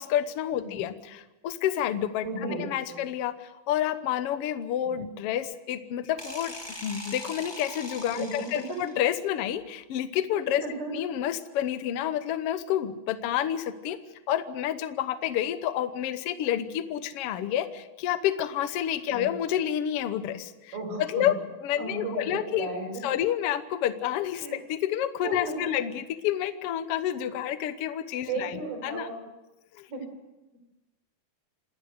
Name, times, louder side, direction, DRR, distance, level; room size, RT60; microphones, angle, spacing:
voice 1, 0.0-6.5 6.8-10.6 10.9-14.0 14.3-22.7 23.0-29.1 29.8-29.9, left 11 dB, 85° left, 11 dB, 1.3 m, -29 dB
voice 2, 2.2-3.0 8.2-8.6 10.6-11.0 19.1-19.3 20.7-21.3 21.8-23.0 24.4-24.6 25.2-25.5 28.3-29.2 29.9-30.0 30.5-30.6, right 2 dB, 85° right, 2 dB, 7.0 m, -34 dB
sound 1, 6.2-9.1, left 1 dB, 15° left, 0.7 m, -41 dB
27.5 x 13.0 x 8.1 m, 1.1 s
omnidirectional pair, 4.2 m